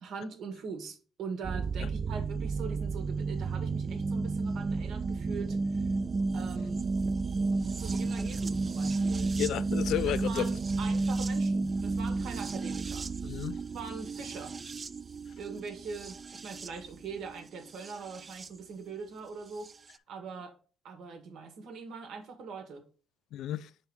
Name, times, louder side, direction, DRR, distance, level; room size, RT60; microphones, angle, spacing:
voice 1, 0.0-5.9 6.3-6.8 7.8-9.4 10.0-13.1 13.7-14.6 15.4-19.7 20.1-20.5 20.8-22.8, right 5 dB, 80° right, 1.6 m, -42 dB
sound 1, 1.4-18.5 19.7-19.8, right 3 dB, 35° right, 0.4 m, -32 dB
voice 2, 9.4-10.5 13.2-13.6 23.3-23.7, left 12 dB, 80° left, 0.4 m, -32 dB
4.8 x 4.0 x 5.6 m
cardioid pair, 90°, 0 cm